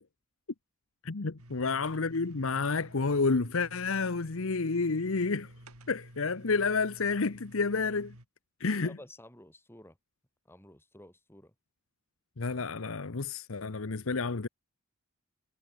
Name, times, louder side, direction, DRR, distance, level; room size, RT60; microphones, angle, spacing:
voice 1, 1.0-5.5 5.9-8.1 8.6-9.0 12.4-14.5, left 4 dB, 65° left, 0.9 m, -30 dB
sound 1, 1.4-8.3, right 1 dB, 80° right, 7.4 m, -52 dB
voice 2, 8.8-10.0 10.4-11.5, left 1 dB, 10° left, 7.9 m, -52 dB
head